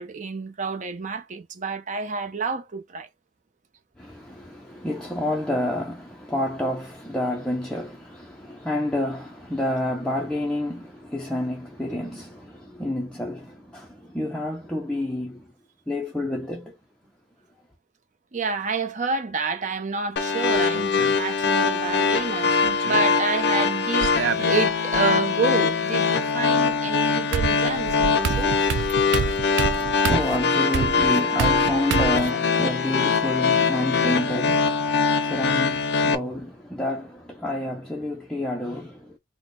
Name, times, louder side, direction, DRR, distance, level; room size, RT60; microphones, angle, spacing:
voice 1, 0.0-3.1 18.3-24.1 24.4-28.7, right 4 dB, 40° right, 0.7 m, -29 dB
voice 2, 4.0-15.5 15.9-16.8 29.1-39.2, left 1 dB, 5° left, 0.5 m, -29 dB
sound 1, 20.2-36.2, left 5 dB, 60° left, 0.6 m, -22 dB
sound 2, 20.5-21.1 22.4-23.1 24.0-25.0 26.7-26.8 27.3-32.3, right 7 dB, 70° right, 0.3 m, -28 dB
3.9 x 2.1 x 3.7 m
head